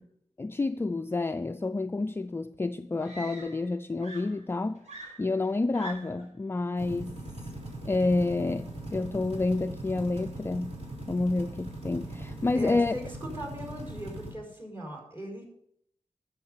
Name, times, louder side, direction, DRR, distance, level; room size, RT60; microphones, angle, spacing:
voice 1, 0.4-4.8 5.2-7.2 7.9-10.7 11.1-12.9, left 3 dB, 20° left, 0.3 m, -29 dB
Screaming, 2.2-2.3 3.0-3.7 4.0-6.3 7.3-7.6, right 3 dB, 75° right, 4.8 m, -45 dB
sound 1, 6.8-14.3, right 1 dB, 60° right, 3.8 m, -40 dB
voice 2, 12.5-15.5, equal, 20° right, 4.7 m, -39 dB
12.5 x 7.3 x 5.5 m
wide cardioid pair, 130°, 12 cm